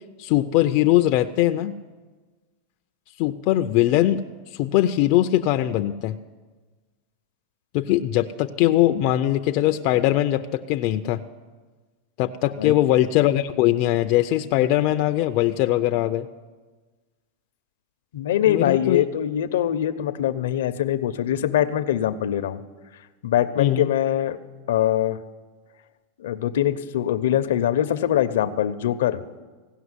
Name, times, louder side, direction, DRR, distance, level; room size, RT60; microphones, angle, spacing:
voice 1, 0.2-1.7 3.2-4.2 4.5-6.2 7.7-11.2 12.2-16.3 18.5-19.0 23.6-23.9, left 14 dB, 50° left, 7 dB, 0.4 m, -21 dB
voice 2, 18.1-22.6 23.2-24.4 24.7-25.2 26.2-29.2, left 11 dB, 85° left, 11 dB, 0.7 m, -23 dB
16.5 x 5.8 x 9.7 m, 1.3 s
supercardioid pair, 140°, 0 cm